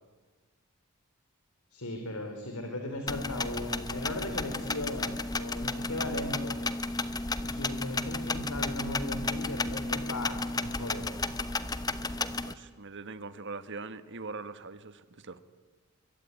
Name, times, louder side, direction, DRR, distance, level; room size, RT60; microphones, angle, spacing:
voice 1, 1.7-6.6 7.4-11.0, left 1 dB, 85° left, 4 dB, 3.8 m, -37 dB
sound 1, 3.1-12.5, left 3 dB, 20° left, 1.0 m, -33 dB
voice 2, 12.5-15.4, right 3 dB, 55° right, 12 dB, 1.5 m, -42 dB
24.5 x 23.0 x 9.7 m, 1.3 s
head